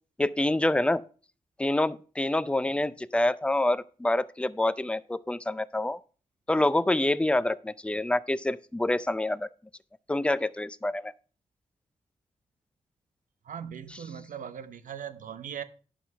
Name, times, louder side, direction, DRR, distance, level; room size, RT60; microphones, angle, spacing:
voice 1, 0.2-1.0 1.6-6.0 6.5-9.5 10.1-11.1, left 1 dB, 10° left, 0.4 m, -27 dB
voice 2, 13.4-15.6, right 8 dB, 90° right, 0.8 m, -39 dB
11.0 x 5.8 x 5.5 m
wide cardioid pair, 85°, 13 cm